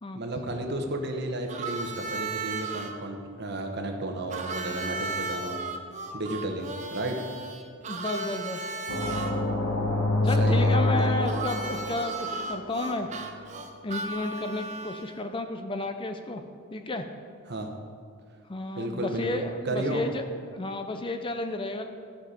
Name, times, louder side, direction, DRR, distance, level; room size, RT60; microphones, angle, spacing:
voice 1, 0.1-5.6 6.1-7.2 10.4-11.2 17.5-17.7 18.7-20.0, right 1 dB, 50° right, 4 dB, 1.0 m, -33 dB
Harmonica, 1.5-2.9 4.3-9.3 11.2-15.2, right 3 dB, 35° right, 0.7 m, -35 dB
voice 2, 7.9-8.6 10.2-13.1 13.8-16.4 16.7-17.0 18.5-20.2 20.5-21.8, left 2 dB, 25° left, 7 dB, 0.5 m, -32 dB
sound 1, 8.9-12.7, left 2 dB, 85° left, 1.4 m, -26 dB
13.5 x 5.9 x 5.1 m, 2.2 s
head